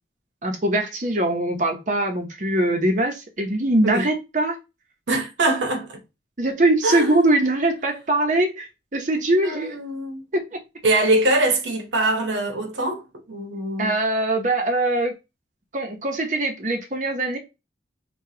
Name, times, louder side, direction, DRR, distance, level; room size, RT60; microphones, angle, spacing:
voice 1, 0.4-4.6 5.5-5.6 6.4-9.8 10.3-10.4 13.8-15.1 15.7-17.4, right 1 dB, 40° right, 0.7 m, -22 dB
voice 2, 5.1-6.0 6.8-7.2 9.4-10.2 10.8-13.9, right 2 dB, 75° right, 0.9 m, -23 dB
5.7 x 2.3 x 2.7 m
head